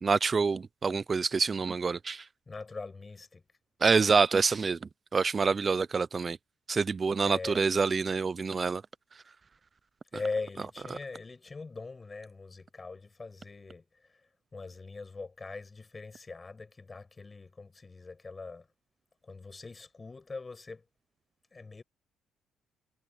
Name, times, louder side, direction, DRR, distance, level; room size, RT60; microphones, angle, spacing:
voice 1, 0.0-2.2 3.8-4.8 5.1-6.4 6.7-8.8, right 5 dB, 40° right, 0.6 m, -26 dB
voice 2, 2.5-3.4 7.2-7.6 10.1-13.8 14.5-18.7 19.2-20.8 21.5-21.8, left 3 dB, 30° left, 6.3 m, -41 dB
supercardioid pair, 60°, 0 cm